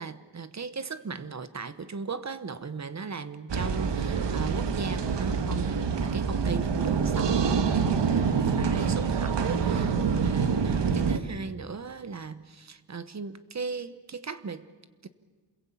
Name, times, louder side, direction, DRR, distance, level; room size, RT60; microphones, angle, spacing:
voice 1, 0.0-14.6 15.0-15.1, right 5 dB, 40° right, 1.1 m, -37 dB
sound 1, 3.5-11.2, right 6 dB, 80° right, 1.6 m, -26 dB
28.0 x 21.5 x 8.6 m
wide cardioid pair, 180°, 42 cm